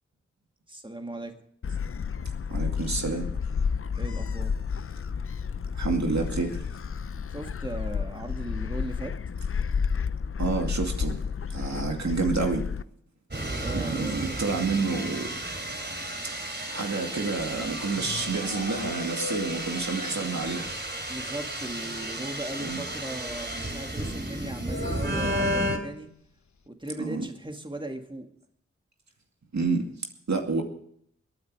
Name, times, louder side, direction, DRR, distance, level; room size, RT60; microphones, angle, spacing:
voice 1, 0.7-1.4 4.0-4.6 7.3-9.1 13.6-14.4 21.1-26.1 26.7-28.3, right 1 dB, 15° right, 4 dB, 2.0 m, -38 dB
Gull seagull, 1.6-12.8, left 6 dB, 50° left, 0.6 m, -31 dB
voice 2, 2.5-3.3 5.7-6.7 10.4-11.2 11.5-12.6 13.7-15.5 16.2-16.3 16.7-20.7 22.6-22.8 27.0-27.2 29.5-29.9 30.3-30.6, right 4 dB, 70° right, 3 dB, 2.4 m, -29 dB
sound 1, 13.3-25.8, right 1 dB, 35° right, 3.3 m, -33 dB
sound 2, 17.9-20.5 20.7-20.8 21.1-21.2 21.5-21.6 22.8-22.9 24.6-25.5, left 4 dB, 70° left, 1.2 m, -39 dB
21.0 x 9.8 x 4.8 m, 0.67 s
cardioid pair, 40°, 29 cm